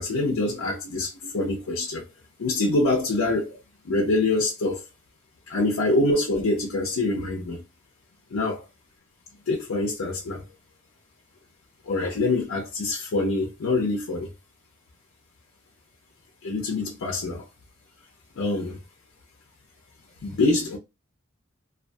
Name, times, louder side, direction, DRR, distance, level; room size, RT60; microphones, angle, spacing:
voice 1, 0.0-2.1 2.4-3.6 3.8-4.8 5.5-7.6 8.3-8.6 9.5-10.4 11.9-14.3 16.4-17.5 18.4-18.8 20.2-20.8, left 2 dB, 75° left, 0.5 m, -25 dB
2.5 x 2.3 x 2.2 m
head